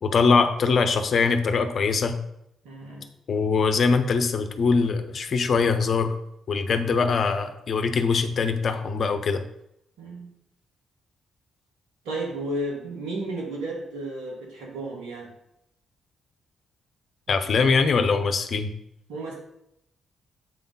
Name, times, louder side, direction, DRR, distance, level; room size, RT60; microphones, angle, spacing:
voice 1, 0.0-2.2 3.3-6.1 6.5-9.4 17.3-18.7, left 4 dB, 55° left, 8 dB, 0.9 m, -22 dB
voice 2, 2.6-3.1 10.0-10.3 12.0-15.3 19.1-19.3, right 1 dB, 75° right, -2 dB, 2.1 m, -33 dB
7.9 x 3.9 x 5.4 m, 0.79 s
hypercardioid pair, 40°, 0 cm